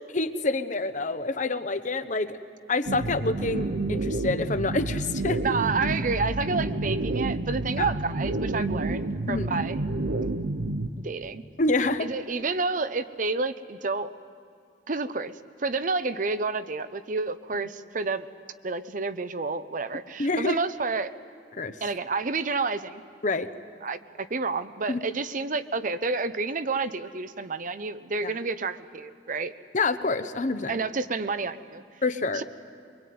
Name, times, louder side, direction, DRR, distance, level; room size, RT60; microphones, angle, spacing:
voice 1, 0.1-2.4 2.7-5.4 7.8-7.9 9.3-9.5 11.6-12.1 20.2-20.6 21.5-21.8 23.2-23.5 24.9-25.0 28.2-28.3 29.7-30.8 32.0-32.4, left 3 dB, 45° left, 11 dB, 1.0 m, -27 dB
sound 1, 2.9-10.9, right 2 dB, 85° right, 0.9 m, -29 dB
voice 2, 5.4-9.8 11.0-11.4 12.0-14.1 14.9-15.3 15.6-18.3 18.6-21.1 21.8-23.0 23.8-29.5 30.7-31.8 32.3-32.4, right 4 dB, 50° right, 12 dB, 0.8 m, -29 dB
23.5 x 23.0 x 9.5 m, 2.5 s
head